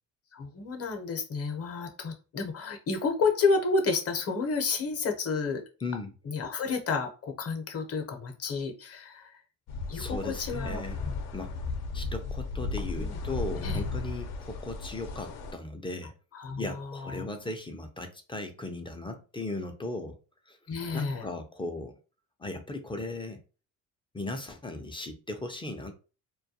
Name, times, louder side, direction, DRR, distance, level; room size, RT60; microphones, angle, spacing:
voice 1, 0.3-5.6 6.2-9.3 9.9-10.8 13.0-13.2 13.6-13.8 16.3-17.3 20.7-21.2, left 4 dB, 40° left, 0.7 m, -30 dB
voice 2, 5.8-6.1 9.9-11.0 11.3-11.5 11.9-16.1 16.6-20.2 20.5-20.6 20.9-22.0 22.4-23.4 24.1-26.0, left 2 dB, 15° left, 0.4 m, -37 dB
sound 1, 9.7-15.5, left 3 dB, 70° left, 0.6 m, -35 dB
2.2 x 2.2 x 2.7 m
supercardioid pair, 85°, 38 cm